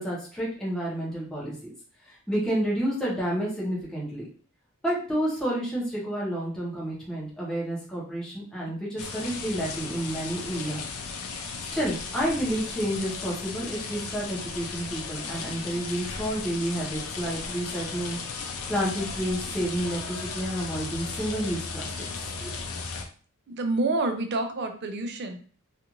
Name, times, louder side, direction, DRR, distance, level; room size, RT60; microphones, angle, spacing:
voice 1, 0.0-1.5 2.0-4.3 4.8-10.8 11.7-18.2 18.7-22.0 22.4-22.5, right 1 dB, 5° left, -6 dB, 0.8 m, -30 dB
sound 1, 9.0-23.1, left 4 dB, 85° left, 0.5 m, -36 dB
voice 2, 23.5-25.4, right 2 dB, 50° right, 6 dB, 0.5 m, -28 dB
2.5 x 2.4 x 2.9 m, 0.42 s
head